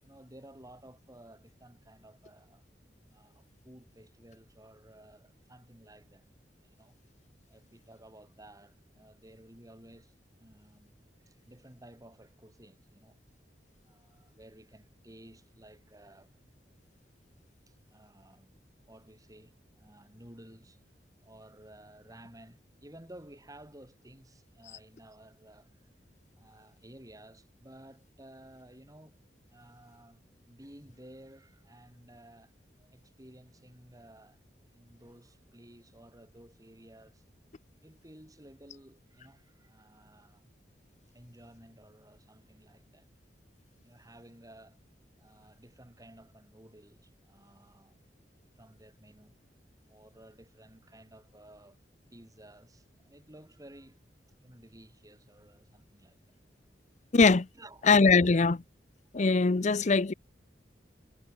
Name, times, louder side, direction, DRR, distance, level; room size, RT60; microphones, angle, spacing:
voice 1, 0.0-2.7 3.1-6.3 6.6-7.0 7.5-10.1 10.4-13.2 13.8-16.4 17.7-20.8 21.2-25.8 26.4-29.2 29.5-32.5 32.8-34.4 34.7-37.2 37.8-40.5 41.1-43.1 43.8-44.8 45.2-48.0 48.6-49.3 49.9-51.8 52.1-54.0 54.4-56.4 57.5-57.9, right 1 dB, 20° right, 5.3 m, -55 dB
voice 2, 57.1-57.5 57.9-58.6 59.1-60.1, left 4 dB, 40° left, 0.6 m, -22 dB
head